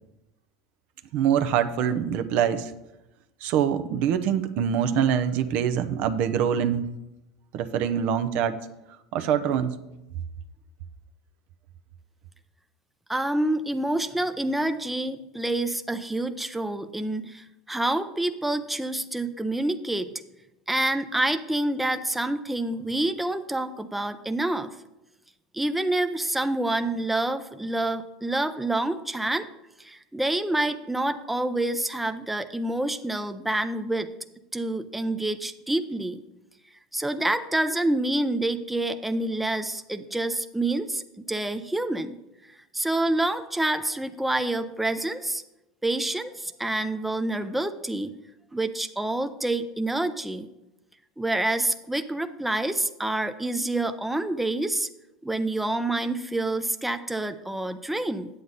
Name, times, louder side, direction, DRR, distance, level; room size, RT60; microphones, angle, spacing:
voice 1, 1.1-2.7 3.4-6.9 7.5-8.6 9.1-9.7, right 8 dB, 60° right, 10 dB, 0.7 m, -24 dB
voice 2, 13.1-20.1 20.7-24.8 25.5-29.5 29.8-34.1 34.5-36.2 36.9-42.2 42.5-45.4 45.8-48.2 48.5-50.5 51.2-54.9 55.2-58.3, right 1 dB, 5° right, 9 dB, 0.5 m, -27 dB
9.3 x 8.1 x 4.0 m, 0.93 s
hypercardioid pair, 90°, 3 cm